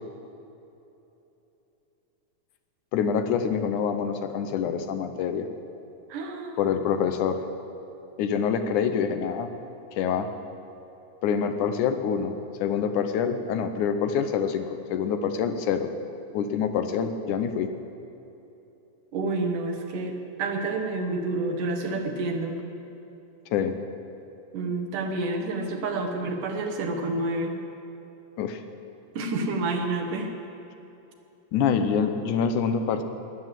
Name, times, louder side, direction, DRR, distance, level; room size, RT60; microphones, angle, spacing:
voice 1, 2.9-5.5 6.6-7.4 8.2-9.5 9.9-10.3 11.2-12.3 12.6-15.9 16.3-17.7 23.5-23.7 28.4-28.6 31.5-33.0, left 7 dB, 80° left, 8 dB, 2.3 m, -26 dB
voice 2, 6.1-6.6 19.1-22.6 24.5-27.6 29.2-30.3, right 2 dB, 85° right, 3 dB, 3.0 m, -29 dB
20.0 x 8.6 x 7.6 m, 2.9 s
omnidirectional pair, 3.6 m